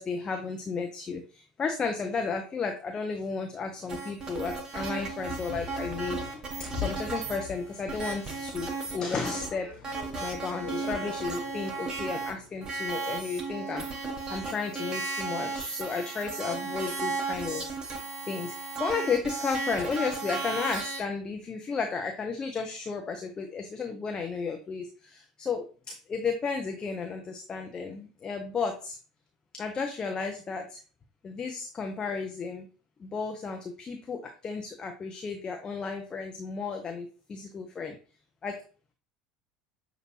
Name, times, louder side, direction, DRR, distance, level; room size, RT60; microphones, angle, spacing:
voice 1, 0.0-9.7 10.2-17.8 18.3-29.0 29.5-30.8 31.2-32.7 33.0-38.0 38.4-38.6, left 5 dB, 25° left, 3 dB, 0.7 m, -33 dB
sound 1, 3.9-9.5 9.8-12.3 12.6-21.0, right 4 dB, 25° right, 1.2 m, -35 dB
sound 2, 4.8-12.8, left 7 dB, 45° left, 1.1 m, -44 dB
6.5 x 2.5 x 3.1 m, 0.36 s
figure-of-eight pair, 70°, 3 cm